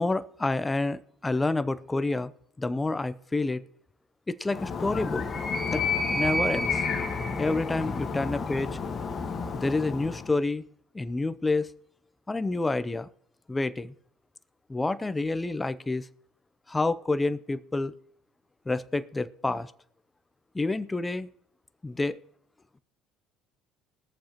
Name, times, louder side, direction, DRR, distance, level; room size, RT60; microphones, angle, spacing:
voice 1, 0.0-2.3 2.6-3.6 4.3-5.2 5.7-5.8 6.1-6.8 7.4-8.7 9.5-10.6 10.9-11.7 12.3-13.1 13.5-13.9 14.7-16.0 16.7-17.9 18.7-19.7 20.5-21.3 21.8-22.2, left 2 dB, 15° left, 15 dB, 0.6 m, -28 dB
Animal, 4.5-10.3, left 3 dB, 35° left, 1.4 m, -30 dB
21.0 x 7.1 x 2.9 m, 0.69 s
supercardioid pair, 80°, 0 cm